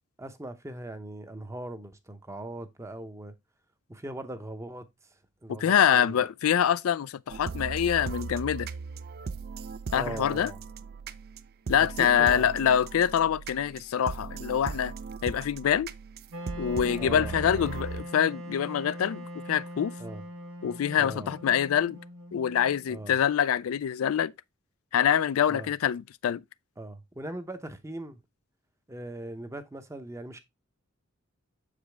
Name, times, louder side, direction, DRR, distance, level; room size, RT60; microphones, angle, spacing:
voice 1, 0.2-3.3 3.9-4.8 5.4-6.3 9.9-10.6 11.7-12.5 17.0-17.7 20.0-20.2 21.0-21.3 22.9-23.2 25.5-25.7 26.8-28.2 28.9-30.4, right 1 dB, 15° right, 0.7 m, -40 dB
voice 2, 5.6-8.7 9.9-10.5 11.7-14.9 15.2-15.9 16.6-19.9 20.6-22.0 22.3-24.3 24.9-26.4, left 9 dB, 85° left, 0.4 m, -25 dB
sound 1, 7.3-18.0, right 5 dB, 50° right, 0.4 m, -38 dB
Wind instrument woodwind instrument, 16.3-23.3, equal, 70° right, 1.1 m, -42 dB
7.1 x 5.0 x 3.3 m
head